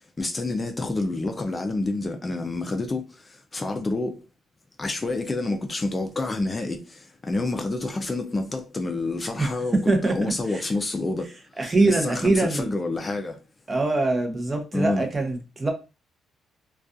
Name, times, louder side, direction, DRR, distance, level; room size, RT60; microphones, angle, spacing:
voice 1, 0.2-4.2 4.8-13.4 14.7-15.1, left 2 dB, 25° left, 0.4 m, -28 dB
voice 2, 9.4-10.6 11.6-12.7 13.7-15.7, right 2 dB, 25° right, 0.6 m, -23 dB
2.3 x 2.3 x 2.5 m
cardioid pair, 90°, 0 cm